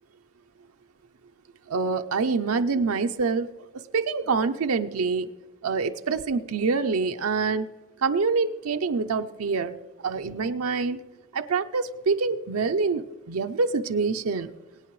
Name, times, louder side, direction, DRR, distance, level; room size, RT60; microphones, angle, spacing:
voice 1, 1.7-3.5 3.9-5.3 5.6-7.7 8.0-9.8 10.0-11.0 11.3-14.5, right 4 dB, 90° right, 6 dB, 0.6 m, -26 dB
23.5 x 8.9 x 3.1 m, 1.2 s
head